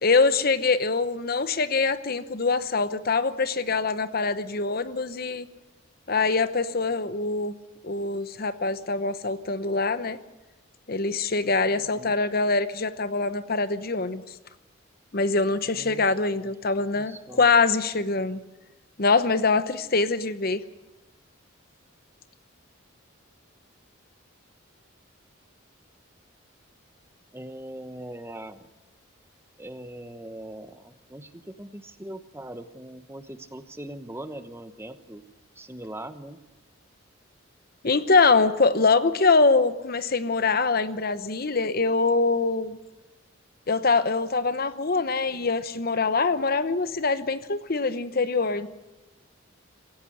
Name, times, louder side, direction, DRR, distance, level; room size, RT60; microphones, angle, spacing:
voice 1, 0.0-5.5 6.1-7.5 7.8-10.2 10.9-14.2 15.1-18.4 19.0-20.6 37.8-42.8 43.7-48.7, left 4 dB, 45° left, 13 dB, 0.9 m, -24 dB
voice 2, 15.7-16.1 16.4-16.5 16.9-17.5 27.3-28.7 29.6-35.2 35.6-36.4, right 1 dB, 10° right, 10 dB, 1.0 m, -41 dB
26.5 x 15.5 x 7.9 m, 1.0 s
head